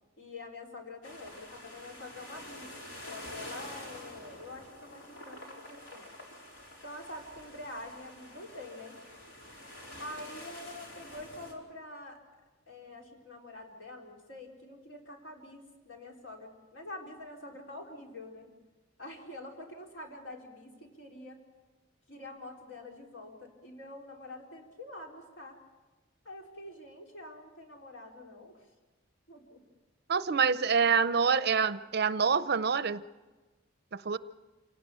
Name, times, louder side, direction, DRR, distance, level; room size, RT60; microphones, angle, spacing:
voice 1, 0.2-2.7 3.0-6.3 6.8-9.0 9.9-12.2 12.7-18.5 19.0-21.4 22.1-25.6 26.2-28.6 29.3-29.6, left 2 dB, 90° left, 0 dB, 4.1 m, -46 dB
sound 1, 1.0-11.5, left 1 dB, 70° left, 4.3 m, -47 dB
voice 2, 30.1-33.0 33.9-34.2, right 6 dB, 55° right, 14 dB, 0.7 m, -26 dB
27.0 x 18.0 x 6.9 m, 1.2 s
head